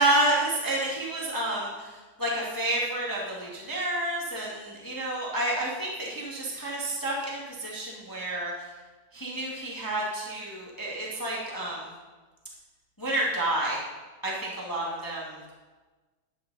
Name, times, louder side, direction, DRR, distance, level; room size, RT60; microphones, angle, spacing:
voice 1, 0.0-8.5 9.1-11.9 13.0-13.8 14.2-15.4, right 1 dB, 10° left, -3 dB, 1.2 m, -29 dB
11.0 x 9.1 x 4.1 m, 1.3 s
omnidirectional pair, 3.4 m